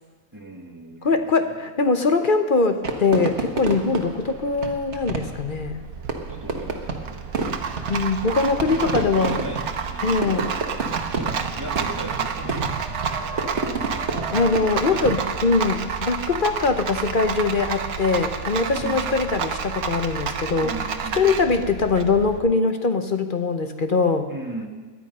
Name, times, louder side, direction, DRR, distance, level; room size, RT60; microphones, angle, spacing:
voice 1, 0.3-1.5 6.2-7.1 8.7-10.6 11.1-12.8 14.9-15.1 15.6-15.9 18.7-19.2 20.6-21.5 24.3-24.7, right 2 dB, 15° right, 1 dB, 1.8 m, -36 dB
voice 2, 1.0-5.8 7.9-9.4 10.0-10.5 14.3-20.8 21.1-24.3, left 4 dB, 45° left, 7 dB, 0.8 m, -22 dB
Fireworks, 2.8-15.5, right 3 dB, 50° right, 1.5 m, -30 dB
Rattle, 3.8-22.4, right 6 dB, 80° right, 1.4 m, -30 dB
19.0 x 11.5 x 5.5 m, 1.4 s
omnidirectional pair, 1.5 m